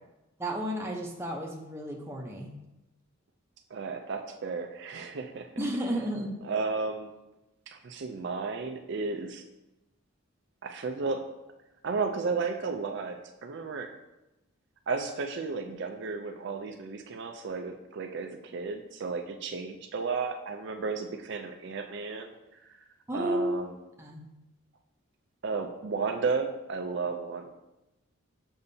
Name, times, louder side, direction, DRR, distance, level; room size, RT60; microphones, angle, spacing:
voice 1, 0.4-2.6 5.6-6.3 23.1-23.6 24.0-24.2, right 1 dB, 10° right, 0 dB, 0.6 m, -32 dB
voice 2, 3.7-5.5 6.5-7.1 7.7-9.4 10.6-11.2 11.8-13.9 14.9-22.3 23.1-23.7 25.4-27.5, right 4 dB, 55° right, 5 dB, 0.4 m, -33 dB
7.0 x 5.3 x 2.7 m, 0.98 s
head